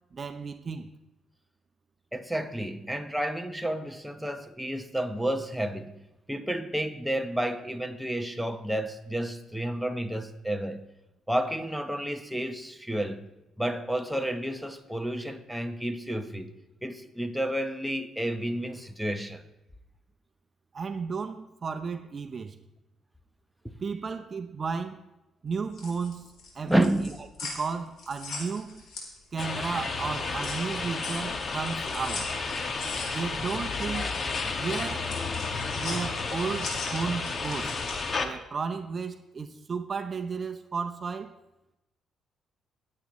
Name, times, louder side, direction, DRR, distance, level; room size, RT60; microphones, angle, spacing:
voice 1, 0.1-0.9 20.7-22.6 23.8-25.1 25.4-26.9 27.4-28.8 29.3-32.3 33.1-34.1 34.6-35.1 35.7-37.7 38.2-41.4, right 5 dB, 40° right, 0.7 m, -33 dB
voice 2, 2.1-5.9 6.3-10.9 11.3-13.3 13.6-16.5 16.8-19.4 26.6-27.1, right 1 dB, ahead, 0.9 m, -30 dB
sound 1, 25.5-29.7 30.0-38.1, left 3 dB, 75° left, 3.9 m, -41 dB
sound 2, 29.4-38.3, left 4 dB, 40° left, 1.2 m, -32 dB
20.5 x 8.5 x 3.1 m
cardioid pair, 90°, 0 cm